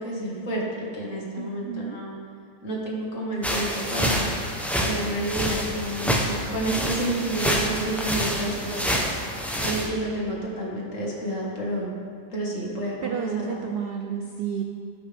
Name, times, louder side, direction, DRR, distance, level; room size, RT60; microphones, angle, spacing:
voice 1, 0.0-2.2 2.6-4.3 4.8-9.1 9.6-11.9 12.3-13.7, right 1 dB, 55° left, -4 dB, 2.1 m, -30 dB
voice 2, 1.4-2.0 13.0-14.6, right 7 dB, 80° right, 4 dB, 0.5 m, -31 dB
sound 1, 3.4-9.9, equal, ahead, 0.4 m, -27 dB
16.5 x 5.8 x 3.5 m, 2.3 s
omnidirectional pair, 1.6 m